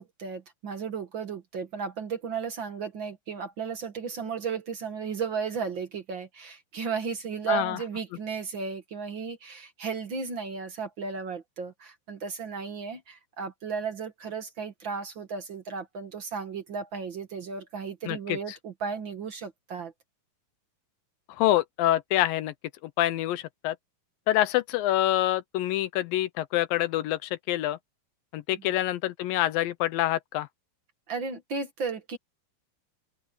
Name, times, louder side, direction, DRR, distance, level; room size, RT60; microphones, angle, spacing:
voice 1, 0.0-19.9 31.1-32.2, right 5 dB, 50° right, 1.6 m, -34 dB
voice 2, 7.5-7.8 18.1-18.4 21.3-22.5 22.8-23.8 24.3-27.8 28.3-30.5, left 14 dB, 80° left, 2.5 m, -26 dB
omnidirectional pair, 4.2 m